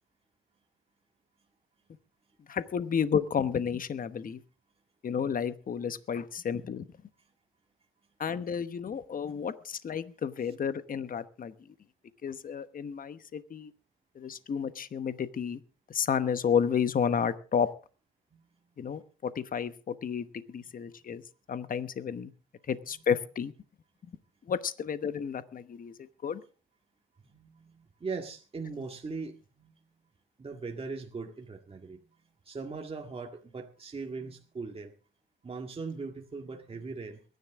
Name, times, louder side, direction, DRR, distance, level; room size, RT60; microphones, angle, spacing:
voice 1, 2.5-4.4 5.0-6.8 8.2-11.5 12.2-13.7 14.2-15.6 15.9-17.7 18.8-21.2 21.5-22.3 22.7-23.5 24.5-25.9 26.2-26.4, left 7 dB, 45° left, 12 dB, 1.1 m, -31 dB
voice 2, 27.2-29.7 30.4-32.0 32.5-34.9 35.4-37.2, right 4 dB, 30° right, 2 dB, 2.0 m, -40 dB
23.0 x 10.5 x 3.7 m, 0.37 s
cardioid pair, 90°, 20 cm